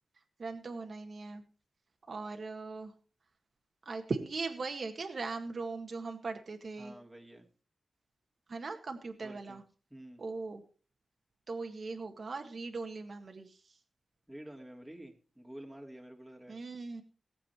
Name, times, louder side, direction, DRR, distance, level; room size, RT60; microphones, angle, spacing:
voice 1, 0.4-1.4 2.1-2.9 3.9-6.9 8.5-9.6 10.2-10.6 11.5-13.8 16.5-17.0, right 3 dB, 55° right, 4 dB, 1.7 m, -39 dB
voice 2, 6.8-7.5 9.2-9.6 9.9-10.2 14.3-16.6, right 1 dB, 5° right, 1 dB, 2.9 m, -49 dB
18.5 x 7.7 x 4.6 m, 0.37 s
wide cardioid pair, 100°, 0 cm